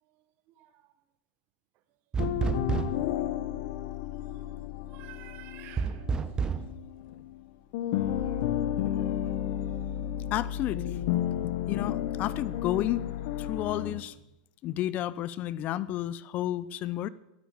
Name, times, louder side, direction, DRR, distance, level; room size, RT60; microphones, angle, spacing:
voice 1, 0.6-0.9 4.2-4.5 4.9-6.1 8.2-8.4, right 14 dB, 45° right, 1.5 m, -51 dB
sound 1, 2.1-3.1 5.8-6.7, right 5 dB, 20° right, 1.0 m, -29 dB
sound 2, 2.2-7.4 7.7-14.0, left 11 dB, 60° left, 1.1 m, -32 dB
voice 2, 10.3-11.0 11.7-13.0 13.4-14.2 14.6-17.1, left 13 dB, 40° left, 0.6 m, -31 dB
13.5 x 12.5 x 7.1 m
supercardioid pair, 125°, 4 cm